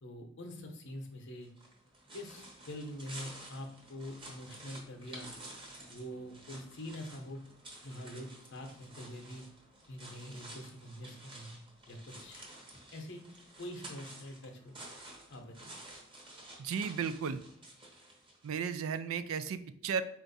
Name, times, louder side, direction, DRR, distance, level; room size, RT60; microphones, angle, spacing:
voice 1, 0.0-1.5 2.1-5.4 5.9-7.4 7.8-9.4 9.9-11.6 11.9-12.4 12.9-13.3 13.6-14.8 15.3-15.7, equal, 60° left, 4 dB, 0.8 m, -45 dB
sound 1, 1.4-18.6, right 1 dB, 25° right, 1.0 m, -51 dB
voice 2, 16.6-17.4 18.4-20.0, right 6 dB, 75° right, 12 dB, 0.3 m, -34 dB
4.4 x 2.5 x 4.0 m, 0.71 s
head